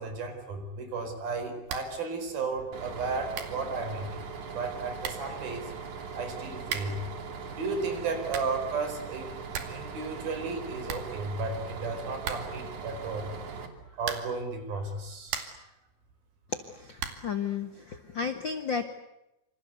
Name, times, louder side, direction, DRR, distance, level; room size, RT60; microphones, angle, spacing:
voice 1, 0.0-4.2 4.5-5.7 6.1-7.1 7.5-9.4 9.7-13.3 13.9-15.4, right 3 dB, 70° right, 7 dB, 6.4 m, -34 dB
sound 1, 1.6-2.0 2.3-2.4 3.0-3.1 3.3-3.7 4.6-4.7 5.0-5.4 6.6-7.1 8.0-8.7 9.0-9.1 9.3-9.9 10.1-10.2 10.5-10.6 10.8-11.6 12.2-12.7 14.0-14.5 15.0-15.7 17.0-17.4, right 7 dB, 85° right, 4.4 m, -38 dB
Bus, 2.7-13.7, right 5 dB, 55° right, 4.1 m, -40 dB
voice 2, 16.8-18.8, left 6 dB, 55° left, 8 dB, 1.3 m, -33 dB
27.5 x 26.5 x 8.1 m, 0.91 s
omnidirectional pair, 4.4 m